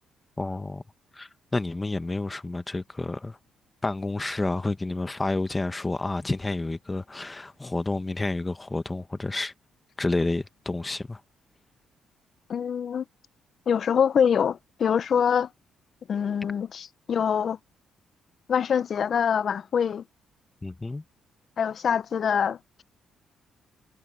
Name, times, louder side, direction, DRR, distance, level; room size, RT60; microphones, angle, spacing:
voice 1, 0.4-0.8 1.1-3.4 3.8-9.5 10.0-11.2 20.6-21.0, left 2 dB, 20° left, 1.2 m, -30 dB
voice 2, 12.5-13.0 13.7-15.5 16.1-17.6 18.5-20.0 21.6-22.6, left 7 dB, 55° left, 0.6 m, -24 dB
cardioid pair, 90°, 0 cm